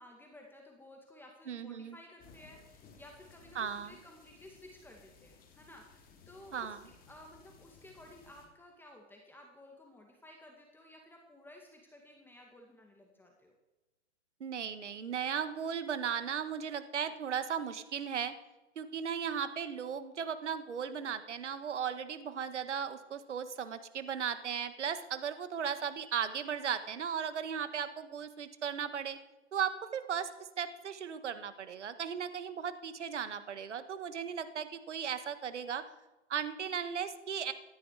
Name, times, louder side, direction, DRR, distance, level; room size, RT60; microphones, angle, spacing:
voice 1, 0.0-13.5, left 1 dB, 5° left, 1 dB, 2.0 m, -55 dB
voice 2, 1.5-2.0 3.5-3.9 6.5-6.8 14.4-18.3 18.7-29.2 29.5-35.8 36.3-37.5, right 7 dB, 70° right, 11 dB, 1.6 m, -36 dB
sound 1, 2.2-8.5, left 5 dB, 25° left, 3.2 m, -60 dB
17.0 x 13.0 x 4.9 m, 1.1 s
figure-of-eight pair, 115°, 36 cm